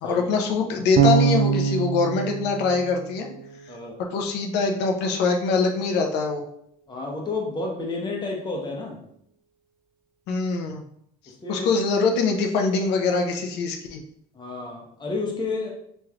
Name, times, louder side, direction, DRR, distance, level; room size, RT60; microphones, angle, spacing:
voice 1, 0.0-3.3 4.1-6.4 10.3-10.8 11.5-14.0, left 4 dB, 85° left, 3 dB, 0.6 m, -23 dB
Bass guitar, 1.0-4.0, right 7 dB, 55° right, 0.4 m, -23 dB
voice 2, 3.7-4.0 6.9-9.0 11.4-11.7 14.3-15.7, left 3 dB, 25° left, -1 dB, 0.9 m, -30 dB
3.1 x 3.0 x 2.4 m, 0.70 s
cardioid pair, 110°, 17 cm